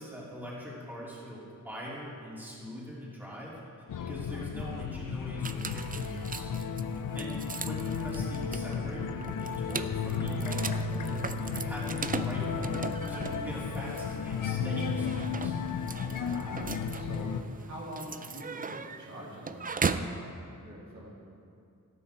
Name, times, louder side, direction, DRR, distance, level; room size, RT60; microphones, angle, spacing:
voice 1, 0.0-3.6 4.0-6.5 7.1-12.8 13.1-15.6, equal, 5° right, -7 dB, 3.2 m, -42 dB
sound 1, 3.9-17.4, left 5 dB, 70° left, 0.7 m, -33 dB
sound 2, 5.4-20.2, right 5 dB, 25° right, 0.4 m, -38 dB
voice 2, 7.1-7.5 16.1-21.1, equal, 55° right, -6 dB, 3.3 m, -45 dB
13.0 x 12.0 x 4.5 m, 2.4 s
wide cardioid pair, 105°, 33 cm